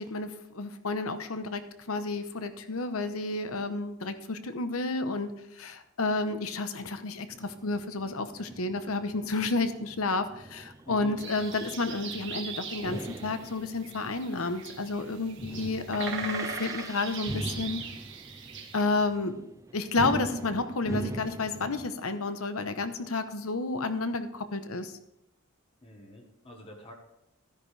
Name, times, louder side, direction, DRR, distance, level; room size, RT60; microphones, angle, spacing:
voice 1, 0.0-17.8 18.7-19.4 19.7-24.9, left 3 dB, 80° left, 10 dB, 0.9 m, -31 dB
sound 1, 7.3-21.9, right 2 dB, 15° right, 0.3 m, -42 dB
sound 2, 11.2-18.8, right 5 dB, 60° right, 1.6 m, -40 dB
voice 2, 25.8-26.9, equal, 25° left, 1 dB, 1.4 m, -46 dB
13.0 x 10.5 x 3.4 m, 0.83 s
head